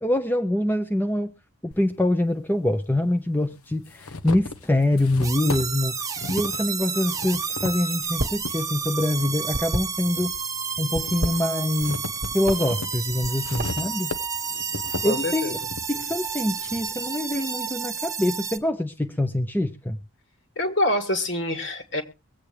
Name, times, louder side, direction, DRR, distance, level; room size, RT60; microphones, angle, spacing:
voice 1, 0.0-1.3 1.6-5.9 6.3-10.3 10.8-12.0 12.3-14.1 15.0-15.6 15.9-20.0, left 1 dB, 10° left, 0.7 m, -25 dB
sound 1, 1.7-1.8 2.9-3.0 3.5-8.6 9.1-10.3 10.7-16.9, left 3 dB, 80° left, 1.1 m, -36 dB
sound 2, 5.2-18.6, right 6 dB, 15° right, 1.1 m, -31 dB
sound 3, 8.0-8.5 8.8-10.4 10.9-11.9 12.2-12.6 13.1-13.9, right 1 dB, 40° right, 1.3 m, -30 dB
voice 2, 15.0-15.5 20.6-22.0, left 1 dB, 55° left, 2.8 m, -26 dB
23.0 x 8.5 x 3.3 m
head